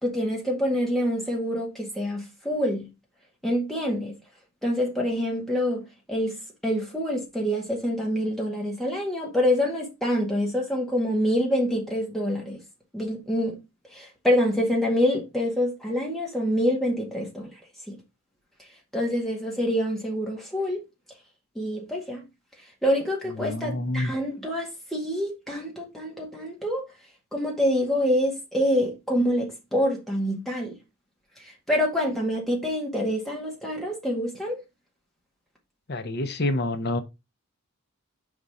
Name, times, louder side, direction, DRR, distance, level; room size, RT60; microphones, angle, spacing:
voice 1, 0.0-2.9 3.4-4.1 4.6-6.4 6.6-12.6 12.9-13.6 13.9-17.5 17.9-18.0 18.9-20.8 21.6-22.2 22.8-26.9 27.3-30.8 31.7-34.6, equal, ahead, 1.8 m, -26 dB
voice 2, 23.4-24.1 35.9-37.0, left 2 dB, 45° left, 0.7 m, -27 dB
5.2 x 4.1 x 4.8 m
head